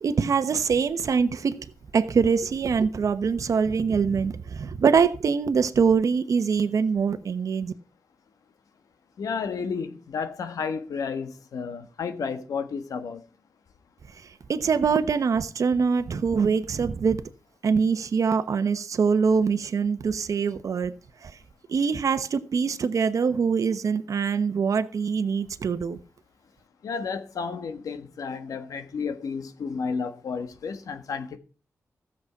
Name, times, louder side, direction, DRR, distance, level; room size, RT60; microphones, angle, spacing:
voice 1, 0.0-1.6 1.9-7.7 14.5-17.2 17.6-20.9 21.2-21.3 21.7-26.0, right 5 dB, 70° right, 1.0 m, -24 dB
voice 2, 9.2-13.2 26.8-31.4, left 5 dB, 85° left, 1.5 m, -32 dB
14.0 x 7.5 x 5.8 m
cardioid pair, 70°, 6 cm